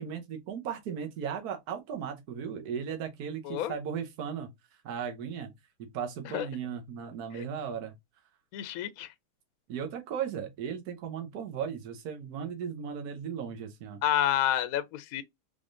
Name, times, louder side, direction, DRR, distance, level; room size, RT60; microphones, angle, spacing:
voice 1, 0.0-4.5 4.8-5.5 5.8-7.9 9.7-14.0, right 7 dB, 70° right, 1.3 m, -36 dB
voice 2, 3.4-3.8 6.2-6.5 7.3-7.5 8.5-9.1 14.0-15.2, left 11 dB, 70° left, 1.0 m, -29 dB
3.7 x 3.6 x 2.5 m
omnidirectional pair, 1.7 m